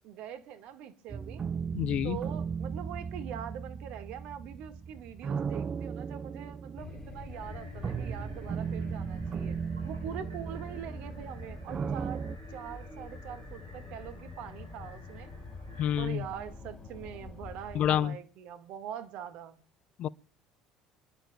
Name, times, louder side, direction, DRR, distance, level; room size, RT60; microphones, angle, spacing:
voice 1, 0.0-1.4 2.0-9.6 9.8-12.2 12.5-15.3 16.0-19.6, right 9 dB, 65° right, 1.9 m, -43 dB
sound 1, 1.1-12.4, right 6 dB, 35° right, 0.5 m, -36 dB
voice 2, 1.7-2.2 15.8-16.2 17.7-18.2 20.0-20.1, left 10 dB, 55° left, 0.6 m, -28 dB
sound 2, 6.8-18.0, left 3 dB, 30° left, 4.0 m, -45 dB
sound 3, 7.3-16.1, equal, 90° right, 3.8 m, -58 dB
26.5 x 11.5 x 2.4 m
hypercardioid pair, 60°, 2 cm